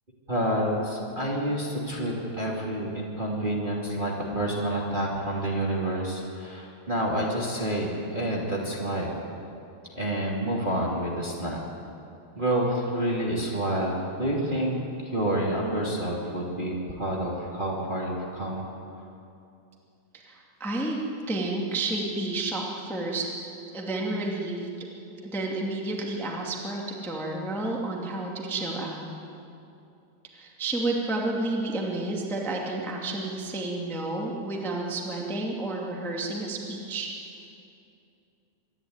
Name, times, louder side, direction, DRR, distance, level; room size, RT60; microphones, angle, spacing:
voice 1, 0.3-9.2 9.9-11.6 12.3-14.7 15.0-18.6, right 1 dB, 20° right, -3 dB, 1.6 m, -28 dB
voice 2, 20.2-21.0 21.3-23.3 23.6-24.7 25.2-29.0 30.3-37.4, right 2 dB, ahead, -2 dB, 0.4 m, -31 dB
25.0 x 11.5 x 9.5 m, 2.7 s
omnidirectional pair, 5.0 m